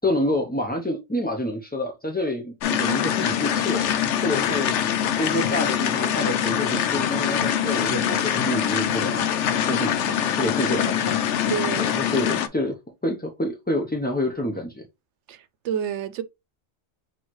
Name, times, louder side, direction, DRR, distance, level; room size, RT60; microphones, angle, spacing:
voice 1, 0.0-3.8 4.2-4.7 5.1-11.2 11.8-12.8 13.0-14.9, left 1 dB, 10° left, 0.5 m, -28 dB
sound 1, 2.6-12.5, left 9 dB, 90° left, 0.9 m, -24 dB
voice 2, 11.5-12.4 15.3-16.2, right 8 dB, 85° right, 0.9 m, -30 dB
6.2 x 2.8 x 3.0 m
omnidirectional pair, 1.2 m